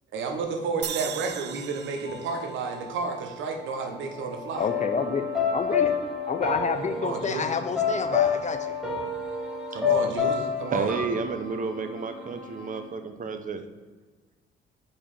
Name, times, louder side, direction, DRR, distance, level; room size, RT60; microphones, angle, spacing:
voice 1, 0.1-4.7 6.9-7.5 9.7-10.9, right 4 dB, 80° right, 3 dB, 1.2 m, -31 dB
sound 1, 0.8-4.1, right 10 dB, 60° right, 0.5 m, -39 dB
sound 2, 2.0-10.2, left 5 dB, 65° left, 1.4 m, -41 dB
sound 3, 4.5-12.8, left 6 dB, ahead, 1.9 m, -29 dB
voice 2, 4.6-5.9 6.3-8.8, left 5 dB, 35° left, 9 dB, 0.6 m, -29 dB
voice 3, 10.7-13.6, right 4 dB, 40° right, 8 dB, 0.8 m, -31 dB
5.5 x 4.4 x 5.5 m, 1.3 s
cardioid pair, 90°, 20 cm